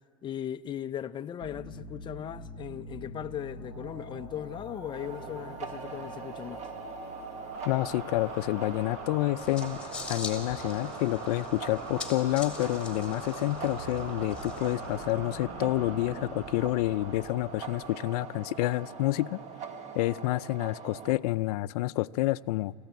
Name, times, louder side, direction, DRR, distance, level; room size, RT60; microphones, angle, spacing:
voice 1, 0.2-6.7, left 10 dB, 25° left, 0.5 m, -38 dB
sound 1, 1.4-19.9, right 2 dB, 60° right, 6.0 m, -42 dB
sound 2, 4.9-21.2, right 6 dB, 35° right, 1.3 m, -43 dB
voice 2, 7.7-9.8 10.1-19.4 19.9-22.7, left 18 dB, 75° left, 0.5 m, -29 dB
sound 3, 9.4-15.1, left 4 dB, 5° left, 3.5 m, -44 dB
26.0 x 15.0 x 9.3 m
supercardioid pair, 130°, 20 cm